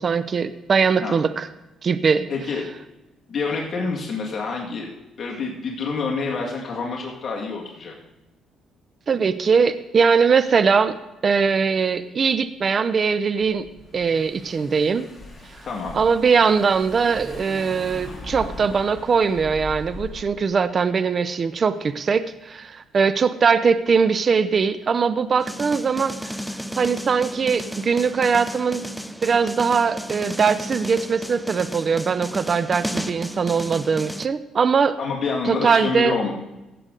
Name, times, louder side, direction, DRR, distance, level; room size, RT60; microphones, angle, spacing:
voice 1, 0.0-1.5 1.8-2.3 9.1-11.0 11.2-13.7 13.9-15.1 15.9-26.4 26.8-28.8 29.2-35.0 35.4-36.1, right 5 dB, 45° right, 13 dB, 0.6 m, -21 dB
voice 2, 2.3-2.6 3.3-4.9 5.2-7.9 15.6-16.0 35.0-36.3, left 4 dB, 45° left, -1 dB, 2.0 m, -27 dB
Car / Engine, 13.4-20.3, left 2 dB, 15° left, 3.2 m, -39 dB
sound 1, 25.4-34.3, equal, ahead, 0.4 m, -33 dB
16.0 x 7.8 x 3.8 m, 1.0 s
cardioid pair, 85°, 0 cm